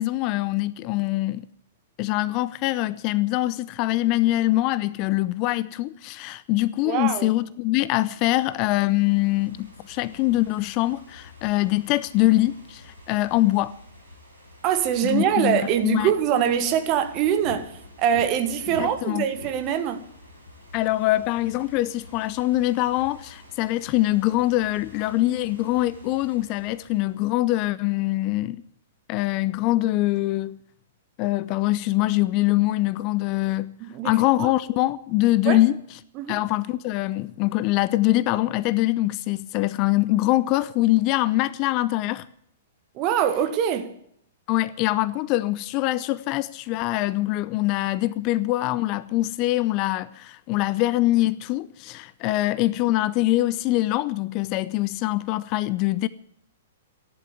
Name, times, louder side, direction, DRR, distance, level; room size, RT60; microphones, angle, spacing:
voice 1, 0.0-1.4 2.0-13.8 15.0-16.1 18.8-19.3 20.7-28.6 29.1-30.6 31.2-33.8 34.0-35.8 36.3-42.3 44.5-56.1, left 17 dB, 35° left, 0.6 m, -23 dB
voice 2, 6.8-7.3 14.6-17.7 18.0-20.0 33.8-34.5 35.5-35.6 36.2-36.4 43.0-43.9, right 9 dB, 35° right, 1.9 m, -23 dB
Ocean / Fireworks, 8.1-27.3, left 2 dB, 90° right, 6.0 m, -47 dB
14.5 x 11.0 x 8.4 m
figure-of-eight pair, 110°, 0 cm